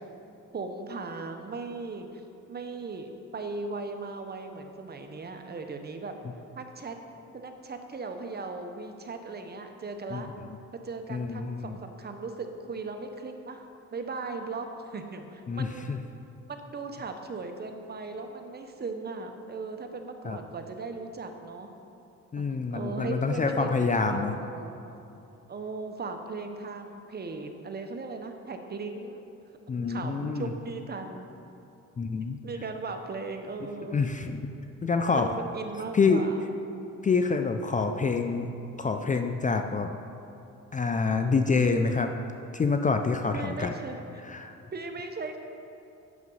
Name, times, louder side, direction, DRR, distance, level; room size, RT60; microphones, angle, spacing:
voice 1, 0.5-2.2 2.5-6.2 6.5-7.0 7.3-10.3 10.7-13.7 13.9-15.9 16.5-21.7 22.4-22.5 22.7-24.8 25.5-29.2 29.9-31.3 32.4-34.1 35.1-36.5 43.3-44.2 44.7-45.4, right 3 dB, 35° right, 5 dB, 0.9 m, -38 dB
voice 2, 10.1-10.6 11.1-11.8 15.5-16.0 20.2-20.4 22.3-24.4 29.7-30.5 32.0-32.4 33.9-34.5 34.8-35.3 35.9-36.2 37.0-38.5 38.8-39.9 40.7-42.1 42.5-43.7 44.3-44.5, left 4 dB, 25° left, 6 dB, 0.5 m, -27 dB
9.5 x 6.1 x 5.5 m, 2.9 s
cardioid pair, 90°, 30 cm